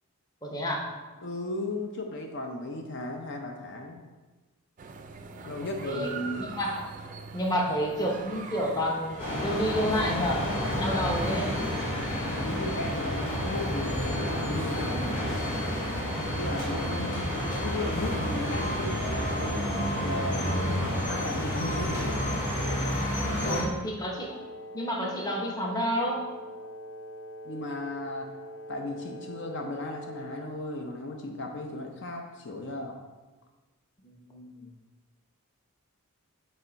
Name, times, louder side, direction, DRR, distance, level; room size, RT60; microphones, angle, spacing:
voice 1, 0.4-0.9 5.3-5.5 5.8-6.9 7.3-10.5 10.8-11.6 23.4-24.4 24.7-26.2 34.0-34.7, equal, 15° left, -1 dB, 0.8 m, -30 dB
voice 2, 1.2-4.0 5.5-6.5 12.3-15.5 16.4-19.7 20.0-22.2 23.4-23.7 27.4-28.3 28.7-33.0, left 2 dB, 55° left, 2 dB, 0.6 m, -36 dB
sound 1, 4.8-22.2, right 4 dB, 35° right, 0.4 m, -44 dB
sound 2, 9.2-23.6, equal, 35° left, 1.9 m, -30 dB
Wind instrument woodwind instrument, 24.1-30.6, equal, 75° left, 1.1 m, -43 dB
9.0 x 3.3 x 3.9 m, 1.2 s
head